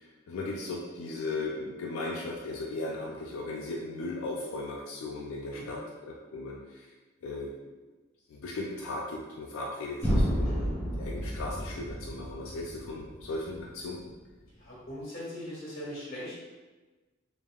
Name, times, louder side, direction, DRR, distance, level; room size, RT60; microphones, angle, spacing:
voice 1, 0.0-6.9 7.2-7.5 8.3-10.5 11.0-14.1, left 2 dB, 85° left, -2 dB, 0.4 m, -37 dB
sound 1, 10.0-14.0, equal, 10° left, 0.4 m, -31 dB
voice 2, 14.6-16.3, left 1 dB, 45° left, -7 dB, 1.2 m, -40 dB
3.2 x 2.5 x 2.3 m, 1.2 s
head